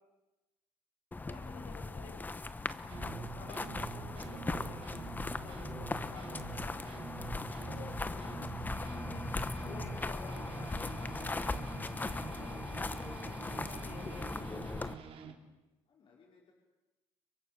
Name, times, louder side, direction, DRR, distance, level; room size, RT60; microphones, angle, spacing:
sound 1, 1.1-14.9, left 3 dB, 15° left, 1.2 m, -39 dB
voice 1, 1.2-2.2 3.2-8.4 8.8-11.4 11.7-14.8, left 5 dB, 90° left, 2 dB, 6.7 m, -53 dB
sound 2, 2.9-15.3, right 8 dB, 60° right, 2.8 m, -47 dB
sound 3, 6.0-14.4, right 2 dB, 15° right, 2.0 m, -59 dB
voice 2, 12.0-12.6 15.2-15.5 15.9-16.5, left 4 dB, 50° left, -1 dB, 5.4 m, -61 dB
30.0 x 23.5 x 6.9 m, 1.0 s
cardioid pair, 130°, 11 cm